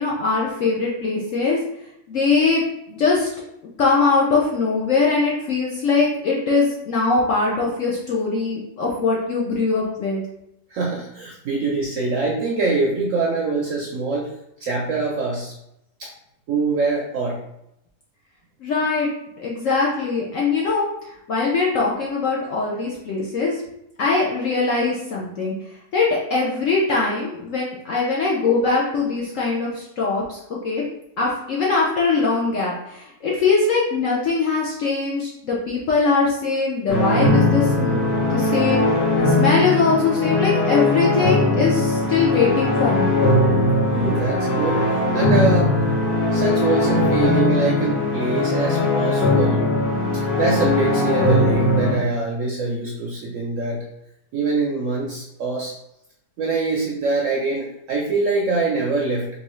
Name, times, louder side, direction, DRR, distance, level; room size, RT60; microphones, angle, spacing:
voice 1, 0.0-1.6 2.1-3.3 3.8-10.2 18.6-19.1 19.4-20.9 21.3-23.6 24.0-30.8 31.2-43.2, left 4 dB, 65° left, -4 dB, 0.8 m, -21 dB
voice 2, 10.7-14.3 14.6-15.5 16.0-16.1 16.5-17.4 43.9-45.8 46.3-49.8 50.4-53.8 54.3-55.7 56.4-59.3, right 3 dB, 70° right, -2 dB, 0.7 m, -24 dB
sound 1, 36.9-52.0, left 2 dB, 85° left, 1.6 m, -19 dB
3.7 x 2.6 x 3.0 m, 0.81 s
omnidirectional pair, 1.9 m